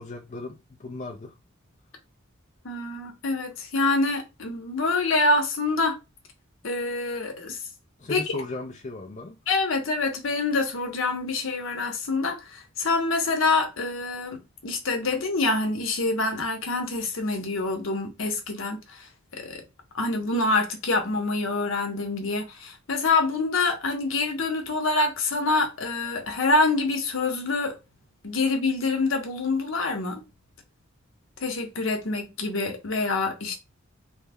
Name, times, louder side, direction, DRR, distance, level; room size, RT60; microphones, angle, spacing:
voice 1, 0.0-1.3 8.0-9.4, left 2 dB, 35° left, 0.4 m, -36 dB
voice 2, 2.6-6.0 6.6-7.6 8.1-8.2 9.5-19.6 19.9-27.8 28.2-30.2 31.4-33.5, left 3 dB, 70° left, 0.9 m, -26 dB
3.3 x 2.1 x 3.4 m
head